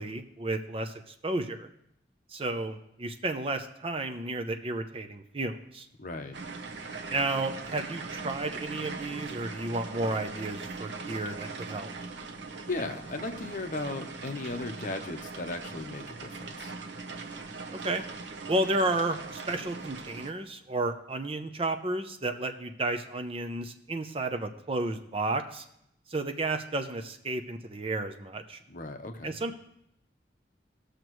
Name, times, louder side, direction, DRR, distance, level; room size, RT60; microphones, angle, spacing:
voice 1, 0.0-1.7 2.3-5.9 7.1-11.9 17.8-18.0 18.5-25.6 26.1-28.6 29.2-29.6, right 2 dB, 30° right, 7 dB, 0.6 m, -32 dB
voice 2, 6.0-6.4 12.7-16.7 28.7-29.3, left 2 dB, 45° left, 6 dB, 0.8 m, -36 dB
sound 1, 6.3-20.3, right 4 dB, 80° right, 0.9 m, -40 dB
18.5 x 6.5 x 3.1 m, 0.78 s
head